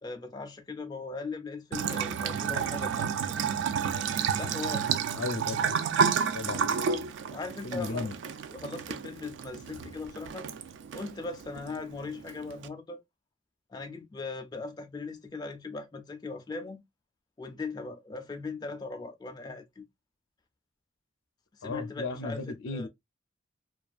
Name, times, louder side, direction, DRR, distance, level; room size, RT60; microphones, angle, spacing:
voice 1, 0.0-3.1 4.4-4.9 6.7-8.1 8.5-10.5 10.9-13.0 13.7-16.8 17.4-19.8 21.6-22.9, left 3 dB, 20° left, 0.3 m, -39 dB
Bathtub (filling or washing) / Trickle dribble, 1.7-12.7, right 6 dB, 70° right, 0.3 m, -31 dB
voice 2, 5.1-5.8 6.3-6.7 7.6-8.1 21.6-22.9, left 3 dB, 85° left, 0.5 m, -35 dB
2.3 x 2.3 x 2.4 m
head